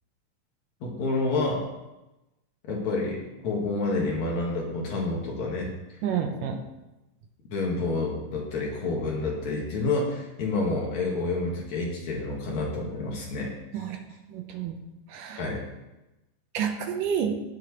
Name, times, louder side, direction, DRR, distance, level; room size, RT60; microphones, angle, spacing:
voice 1, 0.8-1.7 2.7-5.7 7.5-13.5 15.4-15.6, left 3 dB, 60° left, -2 dB, 2.9 m, -28 dB
voice 2, 6.0-6.6 13.7-14.0 14.3-14.8 15.1-15.4 16.5-17.4, right 7 dB, 75° right, 4 dB, 2.5 m, -29 dB
17.5 x 7.4 x 3.2 m, 0.99 s
omnidirectional pair, 4.0 m